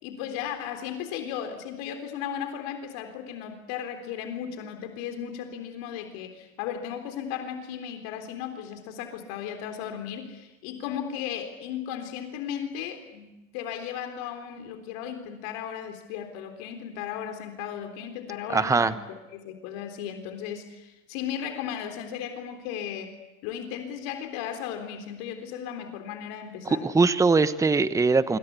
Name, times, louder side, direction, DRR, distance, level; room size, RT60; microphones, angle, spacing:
voice 1, 0.0-23.2 23.4-26.9, left 9 dB, 55° left, 6 dB, 3.8 m, -36 dB
voice 2, 18.5-19.0 26.7-28.4, right 4 dB, 10° right, 14 dB, 1.1 m, -21 dB
26.5 x 24.0 x 8.3 m, 1.0 s
hypercardioid pair, 105°, 39 cm